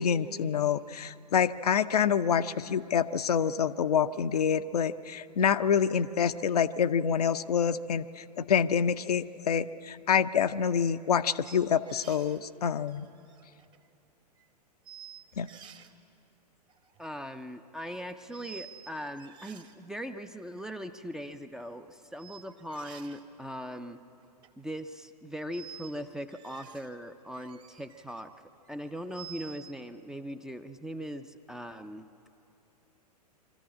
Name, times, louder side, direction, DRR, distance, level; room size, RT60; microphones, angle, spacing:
voice 1, 0.0-13.0 15.4-15.5, left 7 dB, 65° left, 11 dB, 0.6 m, -27 dB
sound 1, 11.4-12.4 12.9-13.9 14.4-14.5 14.8-15.9 16.7-17.0 18.3-18.9 19.2-19.7 20.6-20.7 22.2-23.2 24.2-24.5 25.5-26.0 26.3-26.9 27.3-28.2 28.6-29.7, right 9 dB, 20° right, 1.0 m, -50 dB
voice 2, 17.0-24.0 24.6-28.3 28.7-32.1, equal, 5° right, 8 dB, 0.5 m, -40 dB
23.5 x 14.0 x 8.5 m, 2.7 s
figure-of-eight pair, 105°, 21 cm